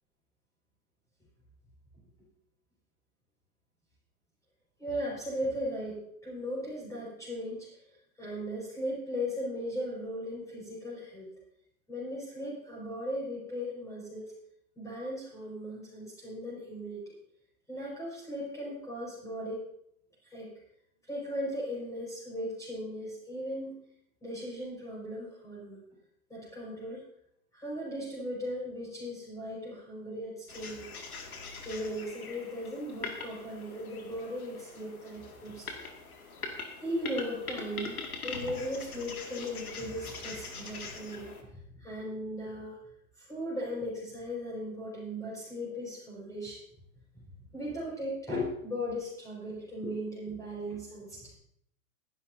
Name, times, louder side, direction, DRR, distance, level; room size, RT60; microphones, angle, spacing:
voice 1, 4.8-7.8 8.2-11.3 11.9-14.3 14.8-17.2 17.7-19.6 20.2-20.5 21.1-23.8 24.2-25.8 26.3-27.0 27.5-30.9 31.7-35.7 36.8-41.3 41.7-42.8 43.2-46.6 47.5-51.3, equal, 10° left, -6 dB, 5.3 m, -37 dB
sound 1, 30.5-41.4, left 4 dB, 90° left, 2.3 m, -43 dB
20.0 x 11.0 x 2.7 m, 0.71 s
hypercardioid pair, 120°, 42 cm